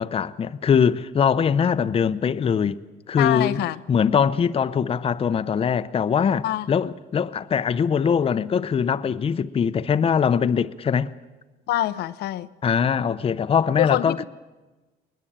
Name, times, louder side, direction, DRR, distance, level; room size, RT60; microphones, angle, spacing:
voice 1, 0.0-2.8 3.1-3.6 3.9-11.1 12.6-14.2, left 7 dB, 35° left, 0.8 m, -22 dB
voice 2, 3.2-3.8 6.4-6.7 11.7-12.5 13.8-14.2, left 14 dB, 75° left, 0.8 m, -25 dB
21.0 x 20.0 x 8.8 m
cardioid pair, 110°, 17 cm